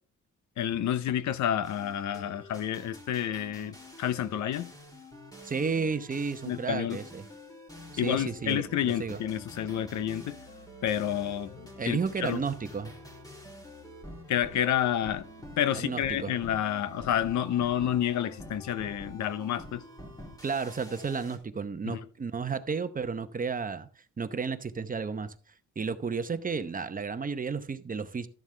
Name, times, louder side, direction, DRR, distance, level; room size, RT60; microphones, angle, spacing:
voice 1, 0.6-4.7 6.5-7.0 8.0-10.4 10.8-12.4 14.3-15.3 15.6-19.8 21.8-22.1, left 10 dB, 70° left, 0.8 m, -29 dB
sound 1, 1.6-21.4, left 1 dB, 10° left, 3.1 m, -48 dB
voice 2, 5.4-7.2 8.0-9.2 11.8-12.9 15.7-16.3 20.4-25.3 25.8-28.3, right 5 dB, 30° right, 0.8 m, -32 dB
13.0 x 7.2 x 3.3 m
cardioid pair, 90°, 30 cm